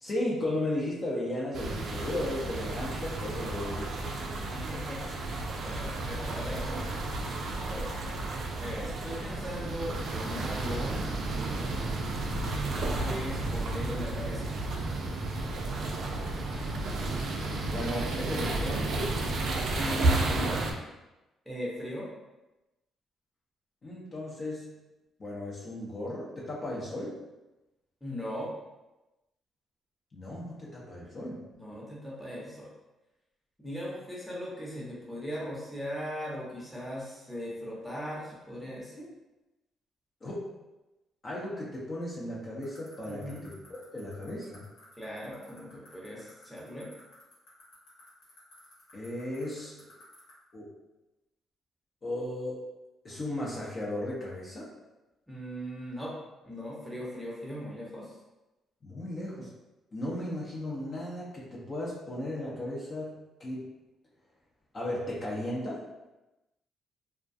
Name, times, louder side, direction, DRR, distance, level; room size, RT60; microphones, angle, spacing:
voice 1, 0.0-4.3 6.6-6.7 17.6-19.1 23.8-24.7 25.2-27.1 30.1-31.4 40.2-40.5 41.2-43.5 43.9-44.6 48.9-49.7 50.5-50.7 52.0-52.6 53.0-54.7 58.8-59.5 59.9-63.6 64.7-65.8, left 1 dB, 40° left, -5 dB, 0.6 m, -35 dB
sound 1, 1.5-20.7, right 2 dB, 65° right, 0.4 m, -32 dB
voice 2, 4.5-5.0 5.6-7.0 7.6-7.9 8.6-11.8 12.8-14.6 19.7-20.6 21.5-22.1 28.0-28.5 31.5-32.7 33.6-39.1 43.1-43.4 45.0-46.9 55.3-56.1 56.4-58.1, equal, ahead, -5 dB, 0.8 m, -39 dB
sound 2, 11.8-18.7, left 1 dB, 60° left, 1.1 m, -51 dB
sound 3, 42.6-50.3, left 4 dB, 85° left, 1.1 m, -55 dB
2.3 x 2.2 x 2.6 m, 1.0 s
cardioid pair, 90°, 0 cm